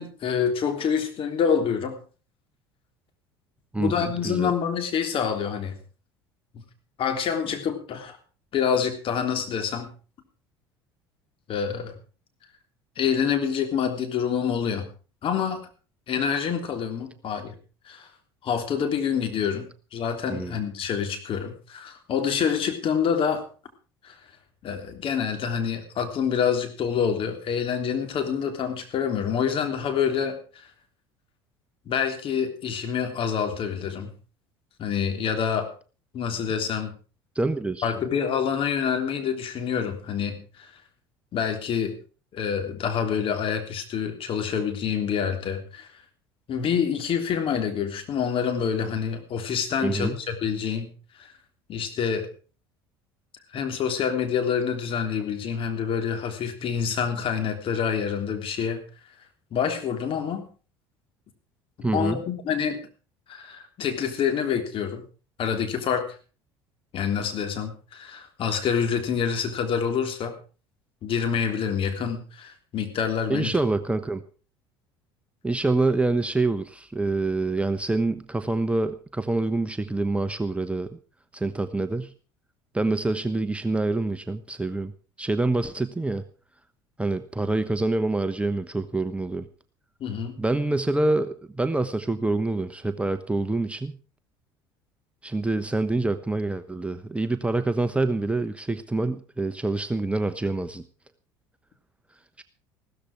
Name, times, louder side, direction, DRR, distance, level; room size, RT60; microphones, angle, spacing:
voice 1, 0.0-2.0 3.8-5.8 6.5-6.6 7.0-8.2 8.5-9.9 11.5-11.9 13.0-14.9 15.2-15.7 16.1-17.5 17.8-18.1 18.4-23.4 24.0-24.2 24.6-30.7 31.9-34.1 34.8-35.7 36.1-36.9 37.8-40.7 41.3-42.0 42.3-45.9 46.5-50.9 51.2-51.3 51.7-52.3 53.5-58.8 59.5-60.5 61.8-62.8 63.3-65.0 65.4-66.1 66.9-70.3 71.0-73.5 90.0-90.3, left 7 dB, 45° left, 6 dB, 3.3 m, -27 dB
voice 2, 3.7-4.5 20.3-20.6 37.3-37.9 49.8-50.2 61.8-62.2 73.3-74.2 75.4-81.0 81.3-82.1 82.7-84.9 85.2-86.2 87.0-89.4 90.4-94.0 95.2-100.8 102.4-102.5, right 2 dB, 10° right, 10 dB, 1.1 m, -26 dB
15.5 x 13.5 x 4.8 m, 0.37 s
hypercardioid pair, 70°, 12 cm